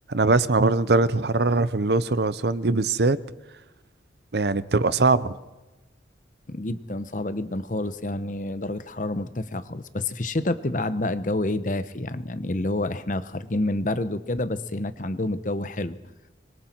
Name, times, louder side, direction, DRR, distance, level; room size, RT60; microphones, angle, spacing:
voice 1, 0.1-3.2 4.3-5.4, right 3 dB, 60° right, 16 dB, 0.7 m, -21 dB
voice 2, 6.5-16.0, left 2 dB, 45° left, 13 dB, 0.9 m, -28 dB
25.5 x 23.0 x 4.5 m, 1.1 s
head